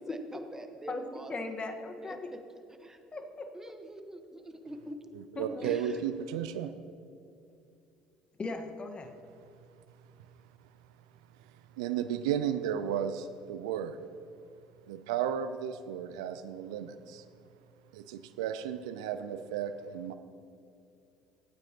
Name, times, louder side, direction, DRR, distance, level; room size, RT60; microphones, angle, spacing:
voice 1, 0.1-1.3 2.0-2.4 2.8-3.0 3.5-5.0 5.6-6.0, right 1 dB, 15° right, 6 dB, 1.2 m, -44 dB
voice 2, 0.9-2.3 3.1-3.5 5.3-5.7 8.4-9.1, left 2 dB, 35° left, 5 dB, 1.4 m, -38 dB
voice 3, 5.1-6.7 11.8-14.0 14.9-17.2 17.9-20.1, right 9 dB, 80° right, 11 dB, 0.4 m, -34 dB
17.5 x 8.9 x 2.9 m, 2.6 s
hypercardioid pair, 60°, 3 cm